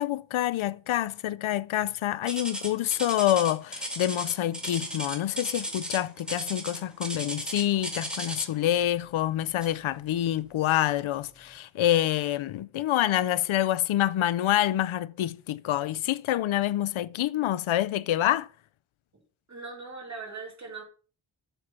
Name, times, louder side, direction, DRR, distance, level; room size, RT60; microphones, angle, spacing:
voice 1, 0.0-18.5, left 13 dB, 80° left, 0.6 m, -27 dB
sound 1, 2.3-8.7 9.6-9.9 10.4-10.5 11.2-11.3, equal, ahead, 1.7 m, -35 dB
voice 2, 19.5-20.8, right 4 dB, 35° right, 2.6 m, -40 dB
7.9 x 6.0 x 5.6 m
wide cardioid pair, 165°, 47 cm